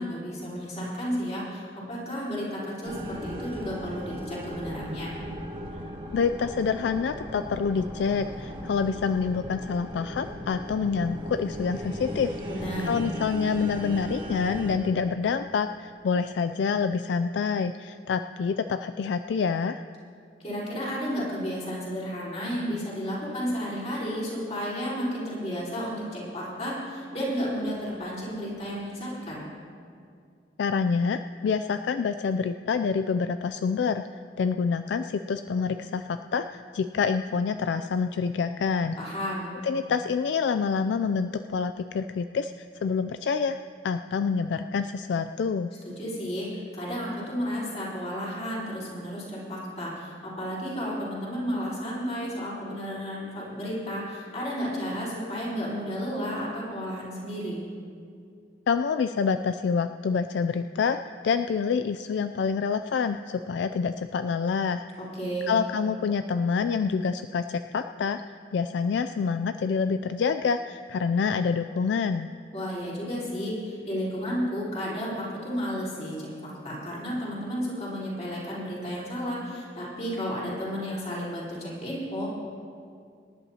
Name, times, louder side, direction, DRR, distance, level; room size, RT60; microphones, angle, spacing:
voice 1, 0.0-5.1 12.5-13.0 20.4-29.4 39.0-39.5 45.8-57.6 65.1-65.5 72.5-82.3, equal, 35° left, -7 dB, 4.2 m, -32 dB
sound 1, 2.8-14.8, equal, 30° right, 1.7 m, -37 dB
voice 2, 6.1-12.4 12.8-19.8 30.6-34.0 34.4-39.0 39.6-43.6 43.8-45.7 58.7-61.0 61.2-64.8 65.5-68.2 68.5-72.3, left 5 dB, 70° left, 9 dB, 0.3 m, -27 dB
25.5 x 11.0 x 2.9 m, 2.3 s
head